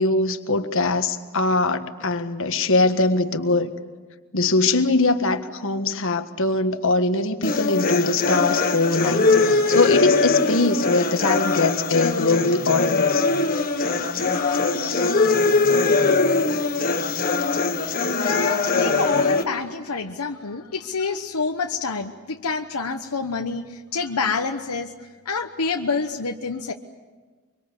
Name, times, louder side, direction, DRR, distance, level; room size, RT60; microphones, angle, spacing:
voice 1, 0.0-3.7 4.3-13.3, left 3 dB, 60° left, 8 dB, 1.5 m, -22 dB
sound 1, 7.4-19.4, left 3 dB, 40° left, 1.6 m, -21 dB
voice 2, 17.8-24.9 25.2-26.7, left 4 dB, 85° left, 4 dB, 1.1 m, -28 dB
24.5 x 24.5 x 8.3 m, 1.4 s
head